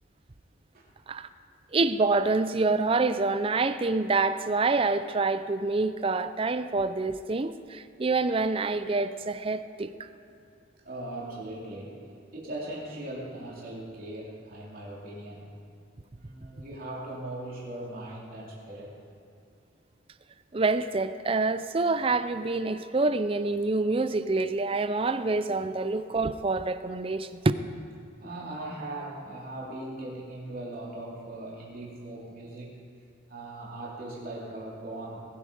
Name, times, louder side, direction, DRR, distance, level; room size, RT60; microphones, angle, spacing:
voice 1, 1.7-10.1 20.5-27.4, right 3 dB, 30° right, 0.5 m, -27 dB
voice 2, 10.8-15.5 16.1-19.0 28.2-32.8 33.3-35.2, right 1 dB, 50° right, 3.4 m, -39 dB
20.0 x 8.4 x 5.5 m
head